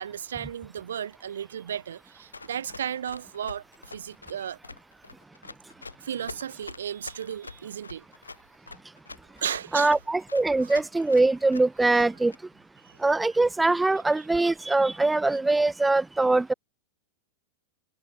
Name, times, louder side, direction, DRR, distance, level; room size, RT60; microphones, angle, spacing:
voice 1, 0.0-4.6 6.0-8.0 9.4-9.9 10.6-10.7 12.8-13.0 13.9-14.3, right 9 dB, 65° right, 0.6 m, -35 dB
Run, 2.3-12.4, left 3 dB, 80° left, 6.2 m, -44 dB
voice 2, 9.7-12.3 13.0-16.5, right 2 dB, 10° right, 0.5 m, -22 dB
figure-of-eight pair, 90°, 0 cm